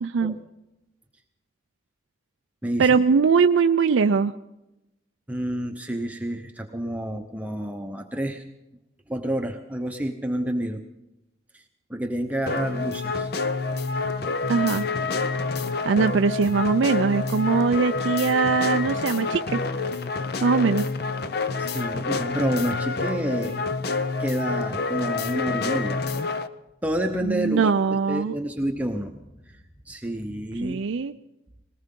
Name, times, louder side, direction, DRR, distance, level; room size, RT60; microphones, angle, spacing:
voice 1, 0.0-0.4 2.8-4.3 14.5-14.9 15.8-19.6 20.4-20.9 27.2-28.3 30.6-31.1, right 5 dB, 85° right, 8 dB, 0.4 m, -21 dB
voice 2, 2.6-2.9 5.3-8.4 9.1-10.8 11.5-11.6 11.9-13.3 21.6-23.6 24.2-26.1 26.8-30.8, right 1 dB, 10° right, 3 dB, 0.8 m, -29 dB
sound 1, 12.5-26.5, left 4 dB, 55° left, 0.6 m, -27 dB
20.0 x 18.5 x 3.8 m, 0.94 s
head